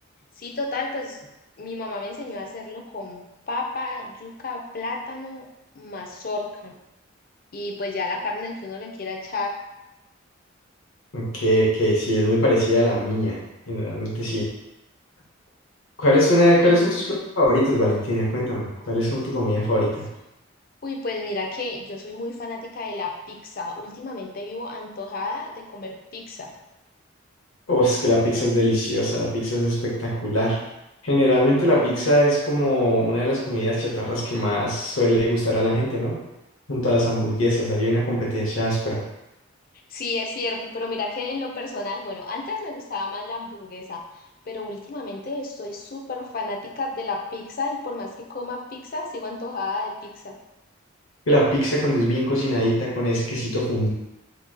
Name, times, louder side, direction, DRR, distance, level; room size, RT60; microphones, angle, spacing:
voice 1, 0.4-1.3 1.6-5.5 5.7-6.7 7.5-9.6 16.6-16.8 20.8-26.5 39.9-44.0 44.5-50.4, left 3 dB, 45° left, 2 dB, 0.4 m, -32 dB
voice 2, 11.1-13.4 13.7-14.5 16.0-20.1 27.7-30.6 31.0-36.2 36.7-39.0 51.3-53.9, equal, 75° left, -4 dB, 1.0 m, -21 dB
2.9 x 2.3 x 3.6 m, 0.93 s
head